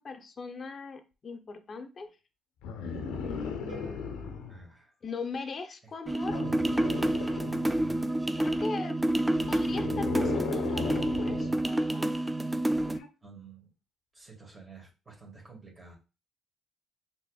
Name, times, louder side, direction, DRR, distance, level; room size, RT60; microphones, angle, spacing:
voice 1, 0.0-2.2 3.2-4.6 5.0-6.4 8.3-9.0 9.5-12.1, left 4 dB, 45° left, 8 dB, 0.7 m, -40 dB
sound 1, 2.6-4.6 6.3-8.0 9.3-11.6 12.9-13.1, left 5 dB, 85° left, 0.5 m, -36 dB
sound 2, 3.7-5.8, right 2 dB, 70° right, 1.9 m, -54 dB
voice 2, 4.5-4.9 13.2-13.7 14.1-15.9, right 4 dB, 25° right, -2 dB, 1.8 m, -51 dB
sound 3, 6.1-13.0, right 1 dB, 10° right, 0.3 m, -28 dB
4.2 x 2.9 x 2.3 m, 0.30 s
supercardioid pair, 75°, 0 cm